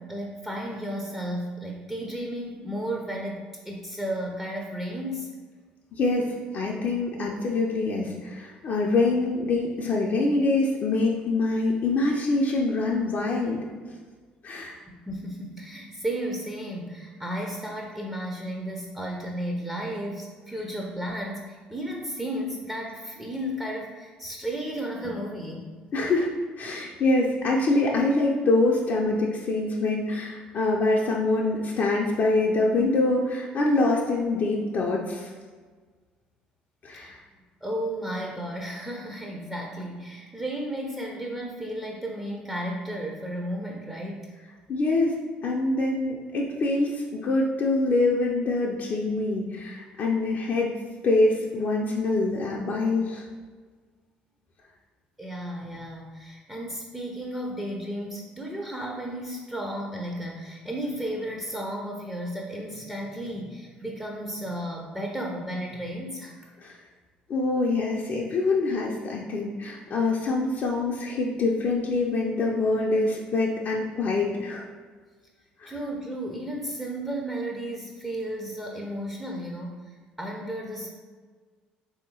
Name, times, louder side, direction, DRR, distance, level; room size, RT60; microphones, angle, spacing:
voice 1, 0.0-5.3 14.9-25.7 36.9-37.1 37.6-44.3 55.2-66.3 75.7-80.9, right 1 dB, 10° right, -1 dB, 0.5 m, -33 dB
voice 2, 5.9-13.7 14.4-14.8 25.9-26.3 26.6-35.3 36.8-37.2 44.7-45.2 45.4-50.7 51.0-53.3 66.6-66.8 67.3-74.6 75.6-75.7, left 2 dB, 45° left, -2 dB, 0.4 m, -25 dB
3.4 x 2.7 x 2.7 m, 1.5 s
hypercardioid pair, 55°, 4 cm